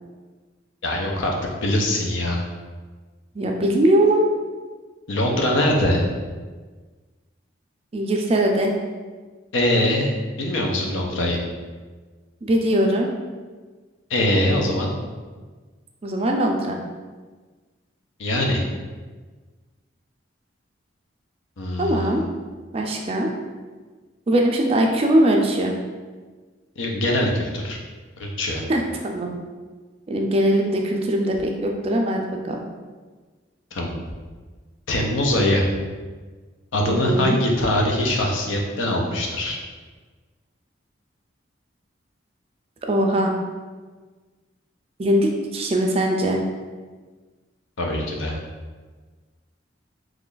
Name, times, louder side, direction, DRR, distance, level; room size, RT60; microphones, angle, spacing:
voice 1, 0.8-1.3 1.6-2.4 5.1-6.0 9.5-10.1 10.4-11.4 14.1-14.9 18.2-18.6 21.6-22.1 26.8-27.8 28.2-28.6 33.7-34.0 34.9-35.7 36.7-39.6 47.8-48.3, left 1 dB, 75° left, 0 dB, 0.6 m, -22 dB
voice 2, 3.3-4.3 7.9-8.7 12.4-13.1 16.0-16.8 21.8-22.2 22.7-23.3 24.3-25.7 28.7-29.3 30.1-32.6 37.0-37.4 42.9-43.3 45.0-46.4, right 1 dB, 30° right, 1 dB, 0.3 m, -21 dB
3.1 x 2.4 x 3.8 m, 1.4 s
head